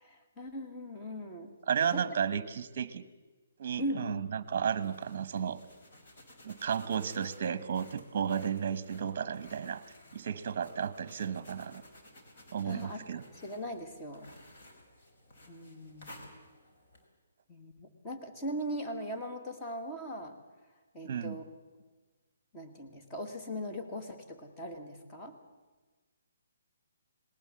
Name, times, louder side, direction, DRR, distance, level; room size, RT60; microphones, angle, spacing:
voice 1, 0.0-1.5 1.9-2.0 3.8-4.2 12.7-13.0 13.4-14.3 15.5-16.2 17.5-20.4 20.9-21.4 22.5-25.4, equal, 15° left, 3 dB, 1.8 m, -39 dB
voice 2, 1.7-3.0 3.6-5.6 6.4-9.8 10.1-11.8 12.5-13.2 21.0-21.4, right 7 dB, 40° right, 16 dB, 1.0 m, -33 dB
sound 1, 4.6-17.1, left 1 dB, 45° left, 4.5 m, -56 dB
20.0 x 18.0 x 7.6 m, 1.3 s
hypercardioid pair, 165°, 0 cm